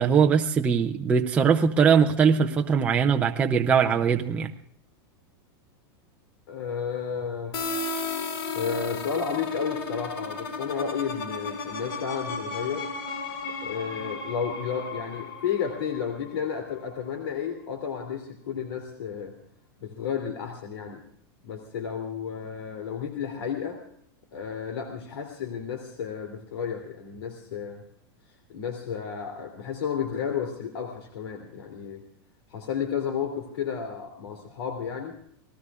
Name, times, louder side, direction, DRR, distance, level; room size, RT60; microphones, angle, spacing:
voice 1, 0.0-4.5, right 6 dB, 10° right, 3 dB, 0.6 m, -21 dB
voice 2, 6.5-7.5 8.5-12.9 13.6-19.3 19.8-21.0 21.4-23.8 24.3-27.8 28.5-32.0 32.5-35.1, left 7 dB, 85° left, 4 dB, 3.0 m, -32 dB
sound 1, 7.5-17.1, left 3 dB, 65° left, 4.5 m, -34 dB
29.5 x 19.0 x 2.5 m, 0.66 s
supercardioid pair, 175°, 13 cm